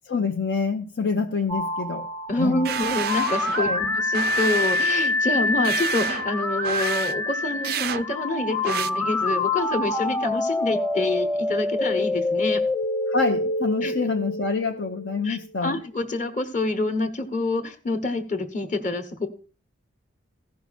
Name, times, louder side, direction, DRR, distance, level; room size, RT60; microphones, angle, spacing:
voice 1, 0.0-2.1 2.3-2.7 3.5-3.8 13.1-15.8, left 4 dB, 65° left, 0.7 m, -26 dB
sound 1, 1.5-15.3, left 2 dB, 15° left, 0.8 m, -26 dB
voice 2, 2.3-12.6 13.8-13.9 15.2-19.3, left 2 dB, 40° left, 1.2 m, -27 dB
sound 2, 2.6-3.7 4.1-5.1 5.6-6.3 6.6-7.1 7.6-8.0 8.6-8.9, right 9 dB, 50° right, 0.4 m, -30 dB
15.0 x 5.8 x 4.1 m
head